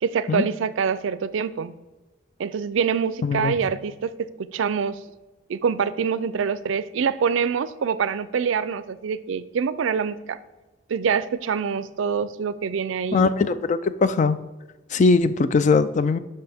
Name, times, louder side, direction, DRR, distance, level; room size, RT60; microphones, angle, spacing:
voice 1, 0.0-1.7 2.4-5.0 5.5-10.4 10.9-13.3, right 6 dB, 75° right, 15 dB, 0.4 m, -25 dB
voice 2, 3.2-3.6 13.1-14.4 14.9-16.2, left 4 dB, 40° left, 13 dB, 0.3 m, -20 dB
11.5 x 5.6 x 3.5 m, 1.1 s
head